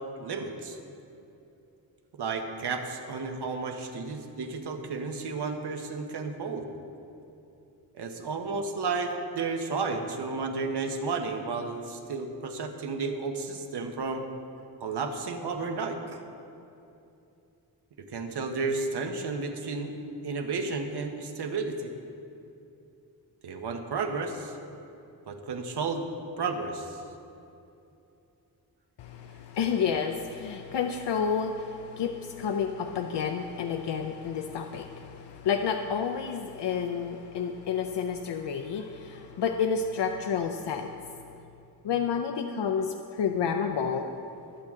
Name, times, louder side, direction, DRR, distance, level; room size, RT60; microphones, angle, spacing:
voice 1, 0.2-0.8 2.2-6.7 7.9-14.2 14.8-16.2 18.1-19.9 20.2-21.9 23.4-24.6 25.3-26.1 26.4-27.0, right 4 dB, 75° right, 5 dB, 1.2 m, -32 dB
voice 2, 29.0-41.0 41.8-44.0, left 6 dB, 85° left, 5 dB, 0.6 m, -30 dB
21.5 x 7.7 x 3.7 m, 2.8 s
wide cardioid pair, 90°, 41 cm